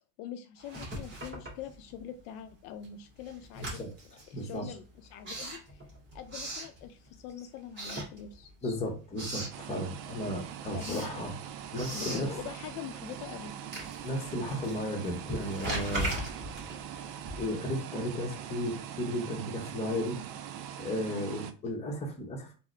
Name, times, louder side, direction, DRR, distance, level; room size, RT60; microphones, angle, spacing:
voice 1, 0.2-3.8 4.3-5.8 6.1-8.5 10.7-11.1 11.9-13.6 21.1-21.3, left 9 dB, 65° left, 7 dB, 0.5 m, -43 dB
Writing, 0.6-2.2 2.5-7.3 7.7-8.7 8.9-9.6 10.0-17.7, right 1 dB, 20° right, 1.6 m, -40 dB
voice 2, 3.6-3.9 4.3-4.7 8.6-11.3 11.7-12.4 14.0-16.1 17.4-20.2 20.8-22.5, equal, 15° left, 0 dB, 0.7 m, -34 dB
sound 1, 9.5-21.5, right 9 dB, 90° right, 0.5 m, -42 dB
3.8 x 2.1 x 3.0 m, 0.36 s
supercardioid pair, 125°, 50 cm